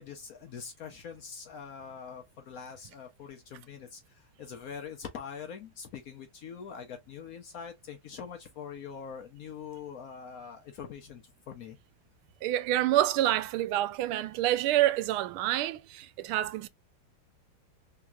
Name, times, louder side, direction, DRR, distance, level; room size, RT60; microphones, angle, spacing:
voice 1, 0.0-11.8, left 7 dB, 70° left, 0.8 m, -43 dB
voice 2, 12.4-16.7, right 14 dB, 90° right, 1.4 m, -27 dB
3.5 x 2.9 x 2.3 m
omnidirectional pair, 2.3 m